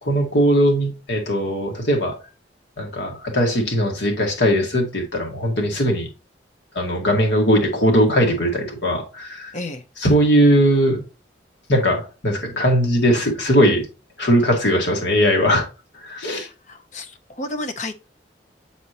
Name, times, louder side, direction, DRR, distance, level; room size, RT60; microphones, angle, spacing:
voice 1, 0.0-2.2 2.8-6.1 6.7-9.5 10.0-11.0 11.7-13.9 14.2-15.7 16.0-16.5, equal, 80° left, 1.7 m, -19 dB
voice 2, 9.5-9.8 16.3-18.0, left 2 dB, 40° left, 0.7 m, -32 dB
7.8 x 4.2 x 2.9 m
head